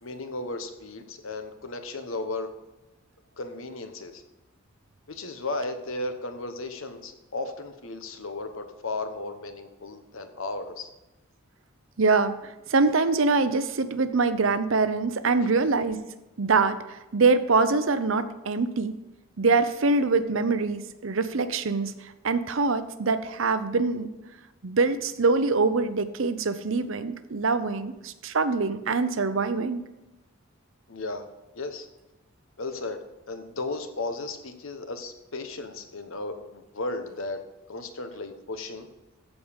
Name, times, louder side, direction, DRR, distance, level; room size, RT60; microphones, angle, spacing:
voice 1, 0.0-2.5 3.4-4.2 5.1-10.9 30.9-31.3 31.5-31.9 32.6-33.0 33.3-37.4 37.7-38.9, left 2 dB, 70° left, 7 dB, 1.1 m, -35 dB
voice 2, 12.0-16.0 16.4-18.9 19.4-24.1 24.6-29.8, right 4 dB, 65° right, 12 dB, 0.7 m, -24 dB
14.5 x 5.2 x 5.2 m, 1.0 s
head